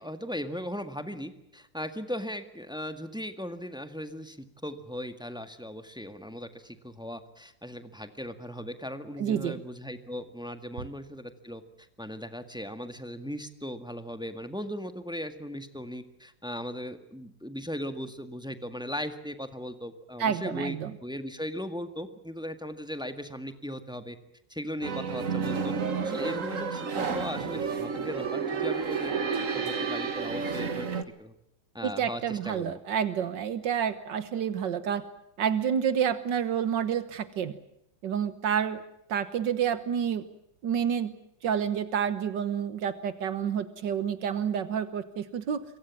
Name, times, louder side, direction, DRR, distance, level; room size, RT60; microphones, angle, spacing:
voice 1, 0.0-11.6 12.0-24.2 24.5-25.7 26.0-30.9 31.2-31.3 31.7-32.8, equal, 5° right, 9 dB, 1.7 m, -38 dB
voice 2, 9.2-9.6 20.2-20.9 31.8-35.1 35.4-37.6 38.0-38.8 39.1-40.3 40.6-41.1 41.4-45.6, right 8 dB, 80° right, 13 dB, 1.8 m, -29 dB
sound 1, 24.8-31.0, right 5 dB, 45° right, 1.9 m, -31 dB
26.5 x 23.5 x 7.3 m, 0.80 s
omnidirectional pair, 1.9 m